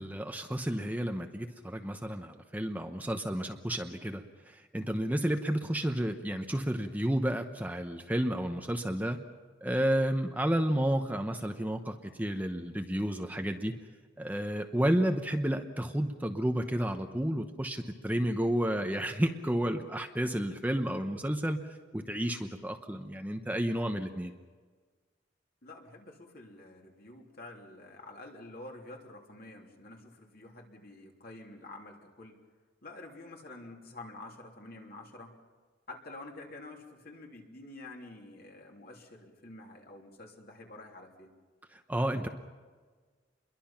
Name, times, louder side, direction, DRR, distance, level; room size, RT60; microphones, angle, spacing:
voice 1, 0.0-9.2 9.6-13.7 14.2-21.6 21.9-24.3 41.7-42.3, equal, 10° right, 5 dB, 0.9 m, -31 dB
voice 2, 25.6-32.4 32.8-35.3 35.9-41.3, left 2 dB, 50° left, 0 dB, 3.3 m, -48 dB
28.0 x 22.5 x 5.8 m, 1.4 s
head